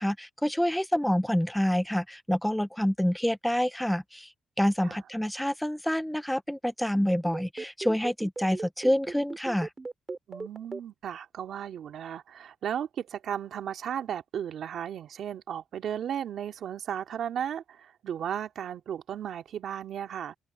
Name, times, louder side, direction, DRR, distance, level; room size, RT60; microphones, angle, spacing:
voice 1, 0.0-4.3 4.6-9.7, equal, 5° left, 0.5 m, -27 dB
sound 1, 6.9-10.8, right 3 dB, 25° right, 4.8 m, -37 dB
voice 2, 10.3-20.3, right 9 dB, 70° right, 2.4 m, -35 dB
open air
cardioid pair, 100°, 0 cm